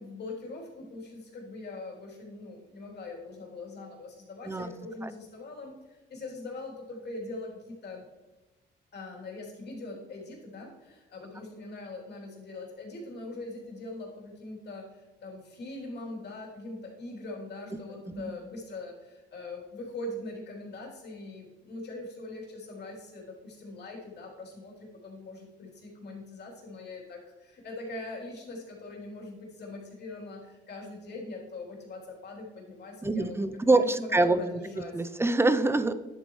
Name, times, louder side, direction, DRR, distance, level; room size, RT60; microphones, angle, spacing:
voice 1, 0.0-8.0 8.9-33.4 33.7-35.1, left 2 dB, 55° left, -2 dB, 3.2 m, -42 dB
voice 2, 33.0-34.4 34.9-35.9, right 2 dB, 10° right, 11 dB, 0.6 m, -25 dB
10.5 x 8.2 x 3.2 m, 1.2 s
cardioid pair, 90°, 20 cm